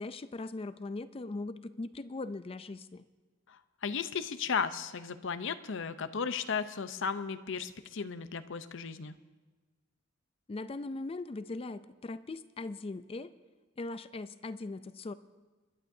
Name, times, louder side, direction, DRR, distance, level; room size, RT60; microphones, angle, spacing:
voice 1, 0.0-3.0 10.5-13.3 13.8-15.1, left 2 dB, 30° left, 13 dB, 0.4 m, -40 dB
voice 2, 3.5-9.1, left 6 dB, 65° left, 11 dB, 0.7 m, -35 dB
29.5 x 12.0 x 2.7 m, 1.3 s
head